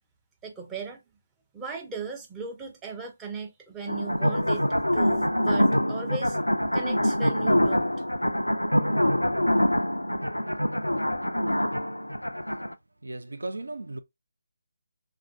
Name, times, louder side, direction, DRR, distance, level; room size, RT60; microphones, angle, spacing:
voice 1, 0.4-1.0 1.5-4.6 4.9-6.4 6.7-8.0, right 5 dB, 10° right, 0.6 m, -37 dB
sound 1, 3.9-12.7, equal, 90° left, 0.3 m, -25 dB
voice 2, 13.0-14.0, right 2 dB, 70° right, 0.5 m, -36 dB
3.7 x 2.5 x 2.4 m
figure-of-eight pair, 150°, 0 cm